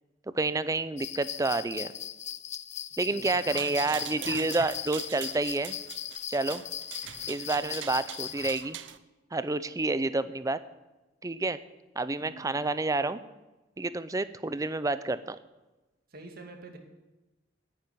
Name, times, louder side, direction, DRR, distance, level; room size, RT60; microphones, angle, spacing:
voice 1, 0.3-1.9 3.0-5.8 6.3-6.6 7.3-8.8 9.3-10.6 11.2-11.6 12.0-13.2 13.8-15.4, right 2 dB, 20° right, 14 dB, 0.5 m, -29 dB
sound 1, 1.0-8.6, left 11 dB, 35° left, 0.4 m, -39 dB
voice 2, 3.1-4.4 7.6-7.7 12.2-12.5 16.1-16.8, right 2 dB, 50° right, 4 dB, 2.0 m, -47 dB
sound 2, 3.4-9.0, right 9 dB, 75° right, 0.7 m, -42 dB
10.0 x 9.0 x 9.4 m, 1.1 s
head